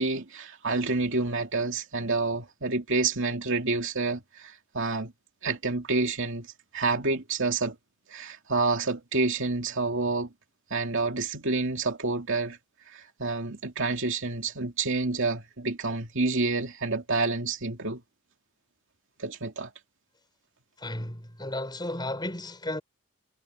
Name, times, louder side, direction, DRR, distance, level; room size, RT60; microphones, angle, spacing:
voice 1, 0.0-5.1 5.4-6.5 6.7-7.8 8.1-10.3 10.7-12.6 12.9-18.0 19.2-19.7, right 3 dB, 60° right, 2.6 m, -28 dB
voice 2, 20.8-22.8, left 1 dB, 20° left, 6.4 m, -34 dB
head